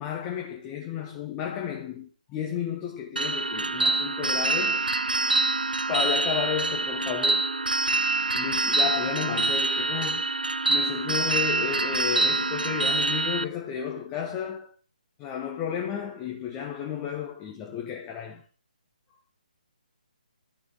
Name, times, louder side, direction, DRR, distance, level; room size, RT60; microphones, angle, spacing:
voice 1, 0.0-4.9 5.9-7.7 8.3-10.3 10.7-14.7 15.2-18.4, left 8 dB, 20° left, 1.2 m, -32 dB
sound 1, 3.2-13.4, right 3 dB, 85° right, 0.4 m, -25 dB
12.5 x 4.7 x 6.0 m
figure-of-eight pair, 140°, 5 cm